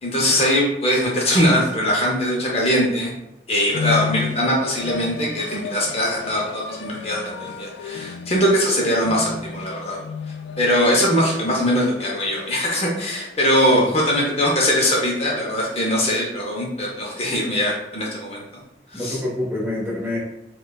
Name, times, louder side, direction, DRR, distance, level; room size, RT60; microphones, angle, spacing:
voice 1, 0.0-3.1 3.5-10.0 10.6-18.4 18.9-19.2, equal, 35° left, -2 dB, 0.5 m, -21 dB
sound 1, 3.6-13.8, left 6 dB, 80° left, 0.3 m, -33 dB
voice 2, 18.9-20.2, left 1 dB, 15° right, -5 dB, 0.9 m, -26 dB
4.8 x 2.2 x 2.2 m, 0.87 s
head